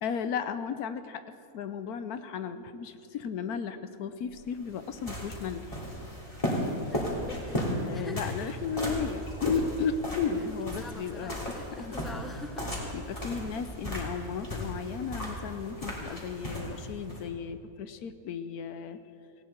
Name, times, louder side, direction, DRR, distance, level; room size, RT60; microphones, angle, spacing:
voice 1, 0.0-1.2 1.5-5.8 7.8-12.0 12.9-19.0, left 6 dB, 85° left, 10 dB, 1.3 m, -34 dB
sound 1, 4.3-17.3, equal, 20° left, 3.1 m, -35 dB
voice 2, 6.9-7.6 7.9-8.4 10.3-10.4 10.8-12.7, left 1 dB, ahead, 3 dB, 1.2 m, -44 dB
18.5 x 17.0 x 4.5 m, 2.6 s
omnidirectional pair, 1.6 m